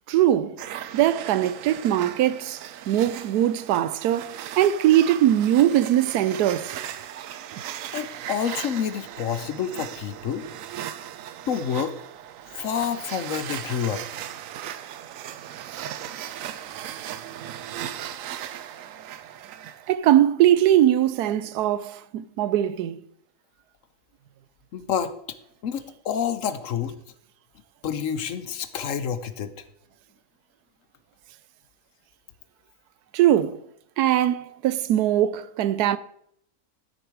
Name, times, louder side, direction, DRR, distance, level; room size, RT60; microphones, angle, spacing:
voice 1, 0.1-0.6 0.9-6.8 15.7-15.9 19.9-23.0 33.1-33.6 34.0-36.0, right 12 dB, 85° right, 1.1 m, -21 dB
sound 1, 0.6-19.9, right 11 dB, 65° right, 0.9 m, -37 dB
voice 2, 7.9-10.4 11.5-11.9 12.6-14.0 24.7-25.1 25.6-26.9 27.8-29.5, left 8 dB, 60° left, 1.0 m, -28 dB
12.0 x 6.6 x 4.7 m
omnidirectional pair, 1.6 m